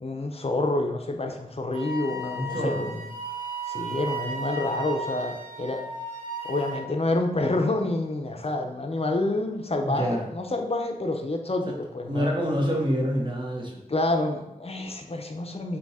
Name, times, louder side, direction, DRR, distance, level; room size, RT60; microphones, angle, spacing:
voice 1, 0.0-3.1 3.7-5.8 6.4-12.3 13.9-15.8, left 2 dB, 40° left, 3 dB, 0.6 m, -28 dB
Wind instrument woodwind instrument, 1.7-6.9, right 2 dB, 70° right, 1.4 m, -34 dB
voice 2, 2.4-2.9 9.8-10.3 12.1-13.8, equal, 30° right, -1 dB, 1.0 m, -27 dB
3.6 x 2.8 x 4.1 m, 0.83 s
wide cardioid pair, 60°, 15 cm